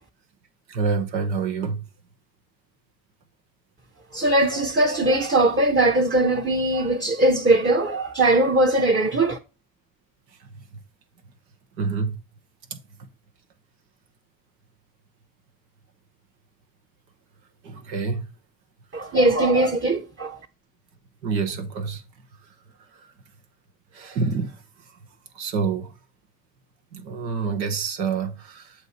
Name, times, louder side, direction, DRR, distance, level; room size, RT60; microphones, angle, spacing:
voice 1, 0.7-1.8 11.8-12.2 17.6-18.2 21.2-22.0 23.9-24.5 25.4-25.9 26.9-28.7, right 5 dB, 90° right, 0.8 m, -27 dB
voice 2, 4.1-9.4 18.9-20.4, right 2 dB, 25° right, 0.8 m, -20 dB
7.9 x 2.8 x 4.3 m
hypercardioid pair, 45°, 50 cm